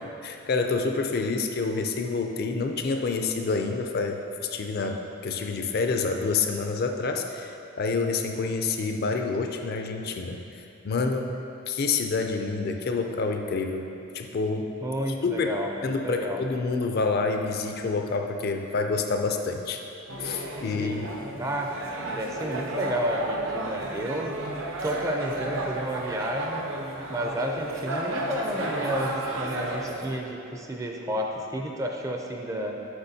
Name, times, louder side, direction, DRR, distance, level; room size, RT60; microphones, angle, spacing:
voice 1, 0.2-10.4 10.8-11.3 11.7-13.8 14.1-14.7 15.2-15.5 15.8-19.8 20.2-21.1, left 4 dB, 50° left, 4 dB, 0.4 m, -28 dB
voice 2, 14.8-16.4 20.8-21.0 21.4-24.3 24.8-26.6 27.1-32.7, equal, 15° right, 1 dB, 0.4 m, -31 dB
sound 1, 20.1-30.2, right 1 dB, 65° right, 0.7 m, -33 dB
7.9 x 5.7 x 2.7 m, 2.8 s
head